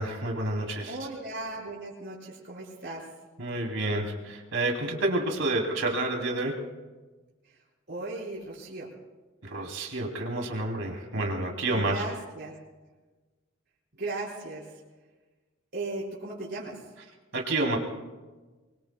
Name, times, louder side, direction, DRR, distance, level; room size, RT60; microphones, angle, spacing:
voice 1, 0.0-1.0 3.4-6.6 9.4-12.0 17.3-17.8, right 2 dB, 80° right, 1 dB, 3.1 m, -29 dB
voice 2, 0.9-3.1 7.9-8.9 11.7-12.5 13.9-14.6 15.7-16.8, right 2 dB, 55° right, -5 dB, 5.2 m, -37 dB
25.5 x 23.5 x 2.3 m, 1.3 s
head